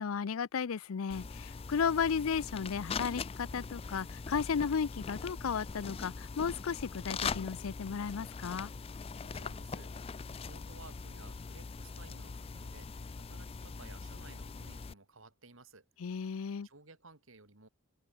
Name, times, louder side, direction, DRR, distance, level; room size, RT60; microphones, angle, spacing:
voice 1, 0.0-8.7 16.0-16.7, left 6 dB, 85° left, 0.5 m, -34 dB
sound 1, 1.1-14.9, left 5 dB, 30° left, 0.4 m, -42 dB
voice 2, 9.2-9.9 10.3-15.8 16.6-17.7, right 3 dB, 75° right, 3.4 m, -56 dB
open air
head